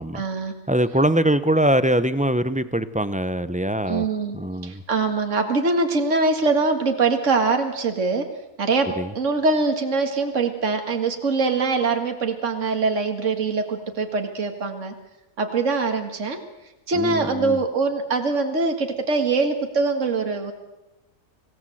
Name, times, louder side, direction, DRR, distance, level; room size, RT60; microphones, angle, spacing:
voice 1, 0.1-0.5 3.9-4.4 4.6-8.3 8.6-14.9 15.4-16.4 16.9-20.5, right 3 dB, 55° right, 5 dB, 2.4 m, -23 dB
voice 2, 0.7-4.1 4.3-4.8 9.0-9.1 16.9-17.6, right 1 dB, 10° right, 13 dB, 0.5 m, -22 dB
25.5 x 17.0 x 7.9 m, 0.99 s
omnidirectional pair, 1.6 m